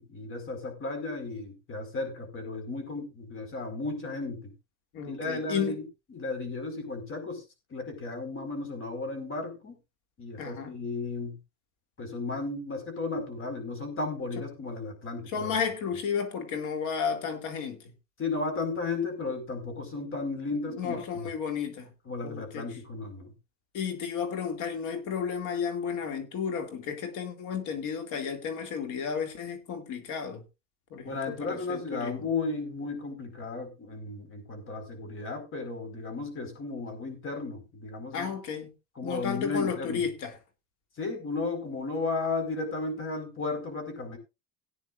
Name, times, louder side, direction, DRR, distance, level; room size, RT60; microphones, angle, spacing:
voice 1, 0.0-4.5 5.1-5.8 6.1-7.4 7.7-9.8 10.2-11.4 12.0-15.6 18.2-21.3 22.0-23.3 31.0-38.3 39.0-40.1 41.0-44.2, left 3 dB, 35° left, 4.6 m, -34 dB
voice 2, 4.9-5.8 10.4-10.7 15.3-17.9 20.7-21.9 22.2-22.8 23.7-30.4 30.9-32.3 38.1-38.7 39.0-40.4, left 6 dB, 60° left, 2.5 m, -33 dB
18.0 x 9.5 x 2.5 m
supercardioid pair, 120°, 35 cm